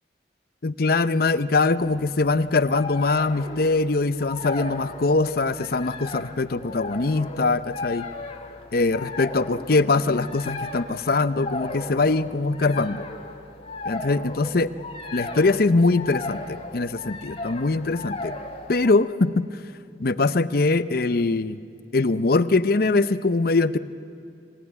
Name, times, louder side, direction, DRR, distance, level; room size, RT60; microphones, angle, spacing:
voice 1, 0.6-8.1 8.7-13.1 13.9-14.7 15.1-18.4 18.7-19.5 20.0-21.6 21.9-23.8, left 3 dB, 55° left, 13 dB, 0.7 m, -22 dB
sound 1, 1.8-18.9, left 2 dB, 35° left, 1.9 m, -36 dB
26.0 x 17.0 x 9.6 m, 2.7 s
head